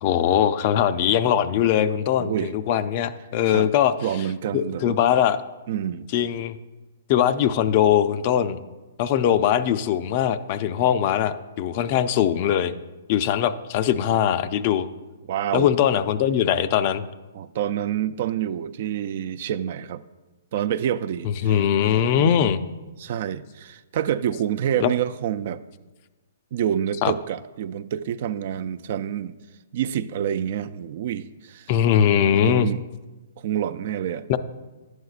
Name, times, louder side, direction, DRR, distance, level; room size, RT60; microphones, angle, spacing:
voice 1, 0.0-3.9 4.5-5.4 6.1-6.6 7.1-8.6 9.0-12.7 13.1-14.9 15.5-17.0 21.2-22.6 24.8-24.9 27.0-27.1 31.7-32.7 34.3-34.4, left 9 dB, 40° left, 0.4 m, -21 dB
voice 2, 2.2-2.5 3.5-3.7 4.0-5.0 5.7-6.1 15.3-15.7 17.3-20.0 20.5-21.6 22.0-22.4 23.0-25.6 26.5-29.3 29.7-31.7 32.4-32.8 33.4-34.2, right 10 dB, 55° right, 0.3 m, -27 dB
11.0 x 7.9 x 2.4 m
hypercardioid pair, 135°, 0 cm